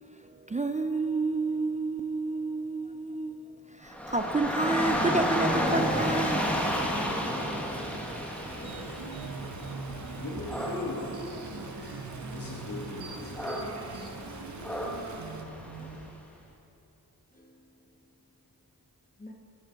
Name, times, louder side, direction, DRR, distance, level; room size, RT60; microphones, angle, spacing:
voice 1, 0.0-6.5, right 3 dB, 20° right, 0.4 m, -30 dB
Dog / Rain, 3.9-16.1, equal, 5° left, 1.3 m, -32 dB
Stream, 5.6-15.4, right 4 dB, 45° right, 0.9 m, -46 dB
voice 2, 6.6-8.0 8.5-8.9 9.6-9.9 10.2-11.1 11.4-12.0 12.3-14.1, left 2 dB, 55° left, 1.6 m, -42 dB
sound 1, 8.6-16.1, right 3 dB, 75° right, 0.9 m, -42 dB
voice 3, 14.1-14.8 15.8-16.0 17.3-18.0 19.2-19.3, left 1 dB, 20° left, 1.4 m, -53 dB
13.5 x 8.6 x 3.9 m
wide cardioid pair, 70°, 39 cm